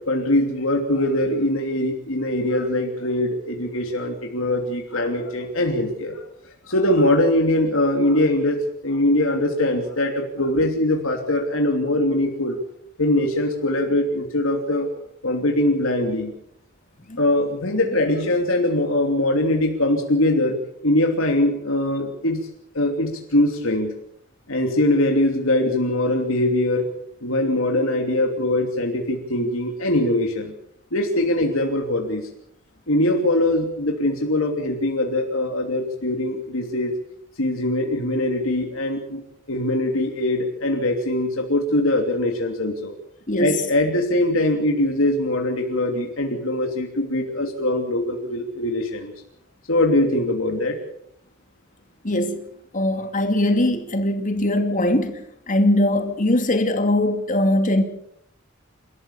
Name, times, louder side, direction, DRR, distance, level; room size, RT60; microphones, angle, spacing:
voice 1, 0.1-6.2 6.7-12.6 13.0-14.9 15.2-16.3 17.2-22.5 22.7-23.9 24.5-26.9 27.2-30.5 30.9-32.3 32.9-36.9 37.4-39.2 39.5-42.9 43.4-49.1 49.7-50.8, left 1 dB, 75° left, 2.9 m, -22 dB
voice 2, 43.3-43.7 52.0-52.5 52.7-57.8, left 1 dB, 40° left, 2.7 m, -21 dB
29.0 x 14.0 x 7.2 m
head